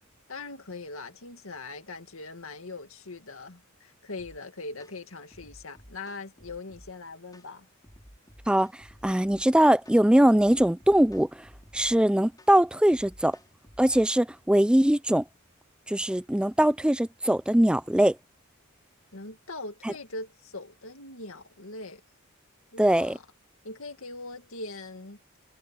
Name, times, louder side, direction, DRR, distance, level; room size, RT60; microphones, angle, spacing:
voice 1, 0.3-7.7 19.1-22.0 22.7-23.2 23.6-25.2, left 3 dB, 65° left, 2.3 m, -41 dB
sound 1, 4.2-4.4 4.8-5.0 5.3-6.9 7.3-7.5 7.8-9.4 9.9-10.0 10.4-12.0 12.4-12.6 12.9-14.1, equal, 20° left, 4.9 m, -53 dB
voice 2, 9.0-11.4 11.7-13.4 13.8-15.2 15.9-18.2 22.8-23.2, right 1 dB, 5° right, 0.5 m, -21 dB
head